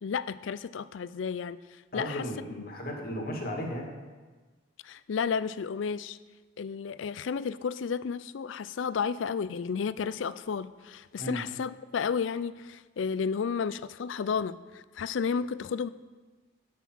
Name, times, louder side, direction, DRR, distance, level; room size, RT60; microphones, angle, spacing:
voice 1, 0.0-1.6 1.9-2.3 4.8-6.2 6.6-15.9, left 6 dB, 70° left, 16 dB, 0.4 m, -32 dB
voice 2, 1.9-3.9 11.2-11.4, equal, 50° left, 1 dB, 1.8 m, -35 dB
13.0 x 5.9 x 6.0 m, 1.3 s
head